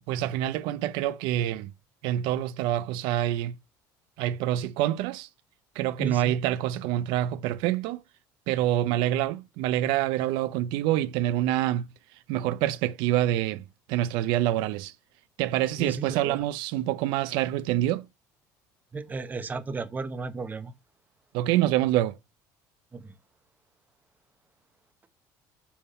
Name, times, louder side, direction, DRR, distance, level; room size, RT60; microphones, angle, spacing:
voice 1, 0.1-1.7 2.0-3.6 4.2-5.3 5.8-8.0 8.5-11.9 12.3-13.6 13.9-14.9 15.4-18.0 21.3-22.2, right 13 dB, 80° right, 0.5 m, -26 dB
voice 2, 6.0-6.4 15.8-16.5 18.9-20.7 22.9-23.1, right 4 dB, 20° right, 0.9 m, -34 dB
7.1 x 3.7 x 5.5 m
cardioid pair, 120°, 8 cm